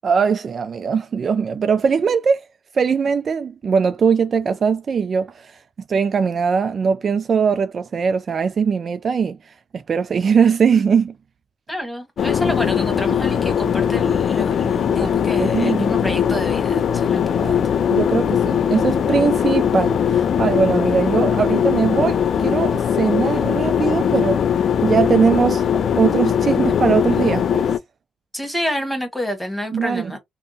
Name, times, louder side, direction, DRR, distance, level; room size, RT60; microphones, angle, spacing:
voice 1, 0.0-2.4 2.7-5.6 5.9-11.1 15.0-15.1 15.4-16.0 17.4-24.4 24.8-25.7 25.9-27.7 29.7-30.1, right 6 dB, 45° right, 0.3 m, -20 dB
voice 2, 11.7-17.6 28.3-30.2, equal, 5° left, 1.3 m, -28 dB
sound 1, 12.2-27.8, left 8 dB, 60° left, 0.3 m, -20 dB
3.5 x 2.1 x 2.7 m
cardioid pair, 90°, 0 cm